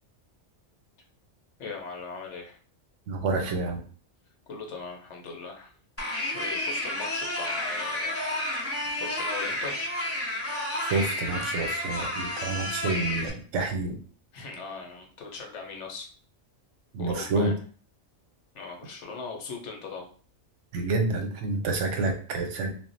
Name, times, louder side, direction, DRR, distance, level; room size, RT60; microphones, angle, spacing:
voice 1, 1.6-2.6 4.5-5.8 6.3-8.2 9.0-10.0 14.3-16.1 17.0-17.5 18.5-20.1, left 4 dB, 75° left, 2 dB, 1.0 m, -39 dB
voice 2, 3.1-3.8 10.8-14.0 16.9-17.5 20.7-22.7, right 3 dB, 85° right, 4 dB, 1.0 m, -28 dB
sound 1, 6.0-13.3, left 1 dB, 20° left, 0.4 m, -31 dB
2.4 x 2.1 x 3.8 m, 0.41 s
omnidirectional pair, 1.2 m